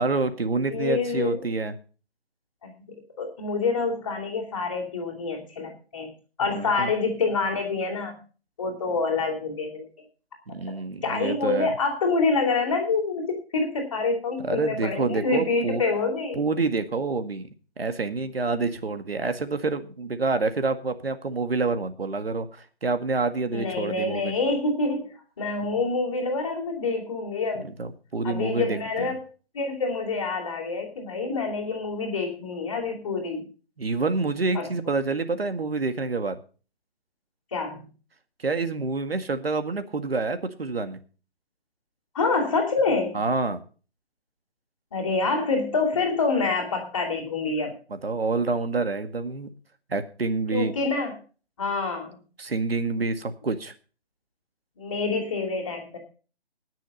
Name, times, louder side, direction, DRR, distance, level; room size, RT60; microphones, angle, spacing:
voice 1, 0.0-1.8 6.5-6.9 10.5-11.7 14.4-15.8 16.3-17.5 17.8-24.3 27.6-29.1 33.8-36.4 38.4-41.0 43.1-43.6 47.9-49.5 49.9-50.7 52.4-53.7, right 3 dB, 65° right, 10 dB, 1.9 m, -27 dB
voice 2, 0.7-1.5 2.6-2.8 3.2-6.1 6.4-8.2 8.6-9.9 11.0-16.4 23.5-27.7 28.2-29.2 29.5-33.5 34.5-34.7 37.5-37.9 42.1-43.2 44.9-47.7 50.5-51.1 51.6-52.2 54.8-56.0, left 3 dB, 20° left, -8 dB, 2.7 m, -27 dB
19.0 x 6.6 x 5.5 m, 0.37 s
hypercardioid pair, 180°, 32 cm